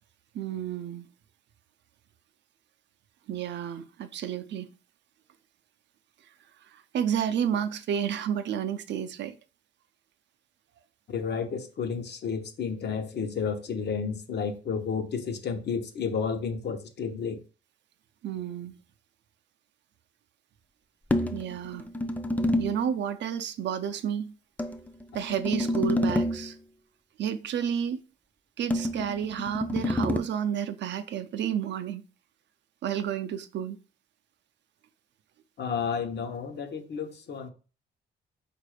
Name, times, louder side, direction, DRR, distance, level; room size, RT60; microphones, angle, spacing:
voice 1, 0.3-1.1 3.3-4.7 6.6-9.4 18.2-18.8 21.3-21.9 22.6-24.3 25.1-26.6 27.2-28.0 28.6-32.0 32.8-33.8, right 9 dB, 65° right, 0.5 m, -31 dB
voice 2, 11.1-17.4 35.6-37.5, left 6 dB, 60° left, 0.8 m, -31 dB
sound 1, 21.1-22.9 24.6-26.5 28.7-30.2, left 1 dB, 10° left, 0.4 m, -28 dB
4.1 x 2.6 x 4.8 m
cardioid pair, 90°, 20 cm